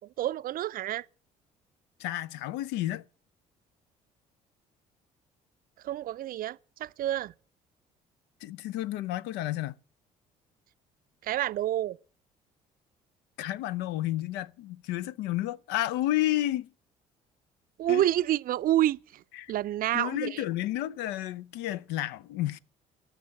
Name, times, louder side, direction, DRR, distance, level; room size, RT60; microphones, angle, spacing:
voice 1, 0.2-1.0 5.8-7.3 11.2-12.0 17.8-19.0 19.5-20.4, right 13 dB, 50° right, 0.5 m, -28 dB
voice 2, 2.0-3.0 8.4-9.8 13.4-16.7 17.9-18.1 19.3-19.5 19.9-22.6, left 14 dB, 70° left, 0.5 m, -31 dB
13.0 x 6.0 x 8.6 m
hypercardioid pair, 55°, 18 cm